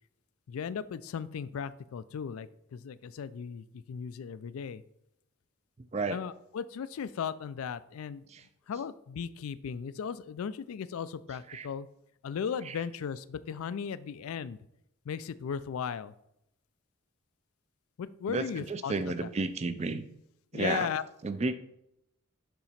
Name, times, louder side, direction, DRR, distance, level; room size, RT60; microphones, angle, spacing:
voice 1, 0.5-4.8 6.1-8.2 8.7-11.9 12.2-14.6 15.1-16.1 18.0-18.9 19.2-19.3 20.5-21.0, left 7 dB, 85° left, 15 dB, 0.4 m, -36 dB
voice 2, 5.9-6.2 8.3-8.4 11.5-11.7 12.6-12.8 18.3-20.1 20.5-20.9 21.2-21.5, right 3 dB, 30° right, 11 dB, 0.4 m, -32 dB
6.9 x 2.9 x 5.7 m, 0.78 s
head